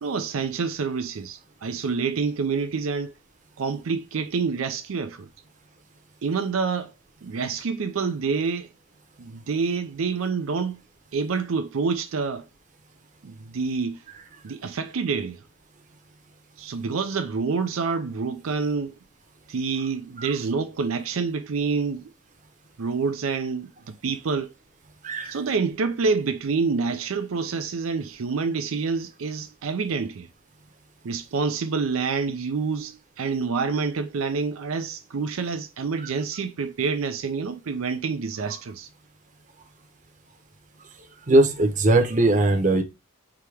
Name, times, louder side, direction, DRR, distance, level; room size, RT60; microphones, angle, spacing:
voice 1, 0.0-3.1 3.6-5.3 6.2-6.9 7.2-8.7 9.2-10.8 11.1-12.5 13.2-14.0 14.4-15.4 16.6-18.9 19.5-22.1 22.8-24.5 25.2-30.3 31.0-38.9, right 5 dB, 80° right, 0.5 m, -27 dB
voice 2, 25.0-25.4 41.3-42.8, right 2 dB, 40° right, 0.8 m, -19 dB
4.8 x 2.9 x 3.3 m
head